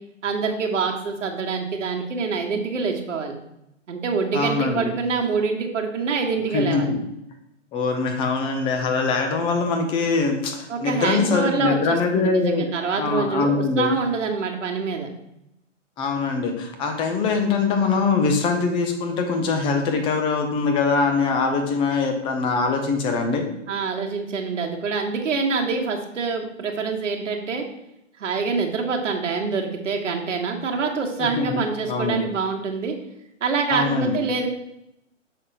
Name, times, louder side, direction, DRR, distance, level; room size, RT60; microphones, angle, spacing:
voice 1, 0.2-3.3 3.9-6.9 10.7-15.1 23.7-27.6 28.2-33.0 33.4-34.5, right 4 dB, 70° right, 2 dB, 1.5 m, -25 dB
voice 2, 4.3-4.9 6.5-7.0 7.7-12.7 13.0-13.9 16.0-23.5 31.4-31.6 31.9-32.2 33.7-34.2, left 4 dB, 15° left, 4 dB, 0.6 m, -23 dB
6.5 x 3.6 x 5.6 m, 0.83 s
hypercardioid pair, 140°, 37 cm